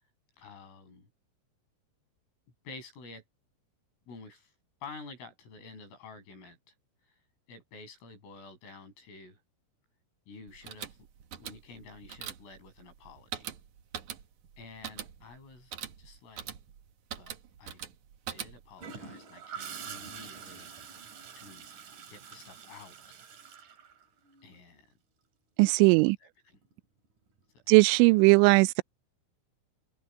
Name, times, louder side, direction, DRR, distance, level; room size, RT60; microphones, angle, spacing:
voice 1, 0.4-1.1 2.6-3.2 4.1-4.5 4.8-6.6 7.0-7.2 7.5-9.4 10.3-11.1 11.4-13.5 14.6-16.5 17.2-17.8 18.3-20.7 21.4-21.7 22.1-22.9 24.4-25.0 25.8-26.6, left 4 dB, 80° left, 9.6 m, -50 dB
sound 1, 10.5-18.8, right 9 dB, 70° right, 1.8 m, -43 dB
Gurgling / Toilet flush, 18.8-24.5 26.5-26.8, right 6 dB, 50° right, 3.3 m, -46 dB
voice 2, 25.6-26.2 27.7-28.8, right 26 dB, 85° right, 2.7 m, -19 dB
omnidirectional pair, 5.8 m